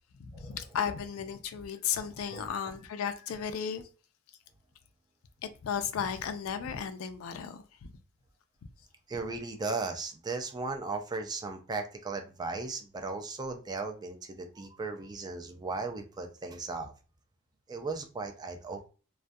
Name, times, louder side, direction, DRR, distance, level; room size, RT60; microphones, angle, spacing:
voice 1, 0.2-3.9 5.6-7.9, left 7 dB, 75° left, 0.4 m, -34 dB
voice 2, 9.1-16.9 17.7-18.9, right 3 dB, 20° right, 0.3 m, -36 dB
2.3 x 2.2 x 2.5 m
head